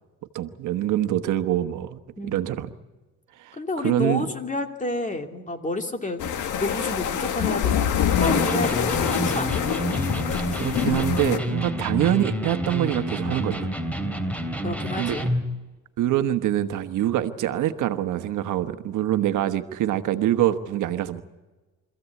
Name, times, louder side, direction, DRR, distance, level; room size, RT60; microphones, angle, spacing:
voice 1, 0.3-2.7 3.4-3.6 3.8-4.2 10.6-13.7 15.0-15.1 16.0-21.2, right 12 dB, 80° right, 9 dB, 1.3 m, -25 dB
voice 2, 3.5-6.2 6.6-7.8 8.2-9.6 11.7-11.9 14.5-15.3, left 2 dB, 25° left, 5 dB, 2.7 m, -29 dB
sound 1, 6.2-11.4, left 8 dB, 80° left, 1.7 m, -25 dB
Electric guitar, 8.2-15.5, equal, 5° left, 3.0 m, -29 dB
26.0 x 15.0 x 8.4 m, 1.2 s
cardioid pair, 90°, 30 cm